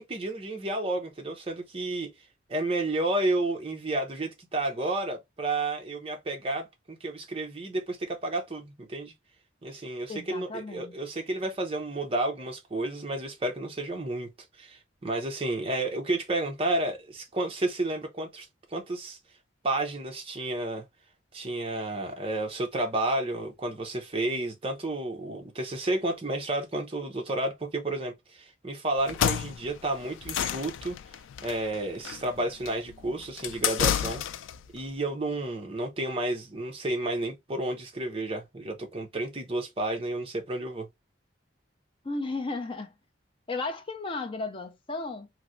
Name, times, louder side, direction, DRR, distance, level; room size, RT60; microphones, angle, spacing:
voice 1, 0.0-2.1 2.5-9.1 9.6-14.3 14.6-19.2 19.6-20.8 21.3-31.0 31.4-34.2 34.7-40.9, right 2 dB, 30° right, 0.7 m, -31 dB
voice 2, 10.1-11.0 42.0-42.9 43.5-45.3, left 3 dB, 25° left, 0.5 m, -34 dB
sound 1, 29.0-34.6, left 9 dB, 80° left, 0.3 m, -30 dB
3.0 x 2.6 x 2.5 m
head